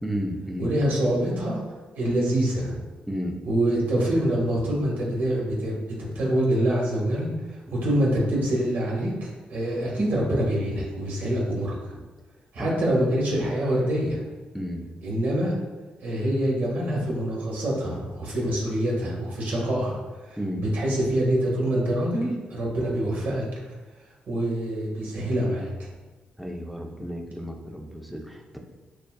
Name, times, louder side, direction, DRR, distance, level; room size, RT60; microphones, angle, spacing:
voice 1, 0.0-0.7 3.1-3.4 7.7-7.8 12.6-12.8 14.5-14.8 20.4-20.6 26.4-28.6, equal, ahead, 1 dB, 0.6 m, -32 dB
voice 2, 0.6-1.6 1.9-2.8 3.4-12.0 12.5-14.2 15.0-15.6 16.0-23.4 24.3-25.7, right 1 dB, 70° right, -4 dB, 1.4 m, -25 dB
6.5 x 2.3 x 2.3 m, 1.2 s
cardioid pair, 75°, 3 cm